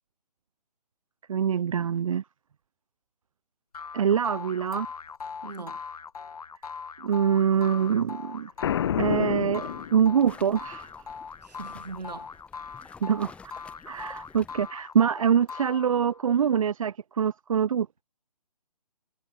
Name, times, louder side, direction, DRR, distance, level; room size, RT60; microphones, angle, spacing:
voice 1, 1.3-2.2 3.9-4.9 7.0-8.5 9.0-10.9 13.0-13.3 13.9-18.0, right 8 dB, 55° right, 0.5 m, -24 dB
sound 1, 3.7-16.3, left 5 dB, 65° left, 3.1 m, -41 dB
voice 2, 5.4-5.8 11.4-12.3, right 4 dB, 80° right, 4.2 m, -40 dB
Boom, 8.6-10.5, left 10 dB, 40° left, 0.8 m, -28 dB
sound 2, 9.6-14.7, left 5 dB, 5° left, 1.9 m, -52 dB
figure-of-eight pair, 145°, 21 cm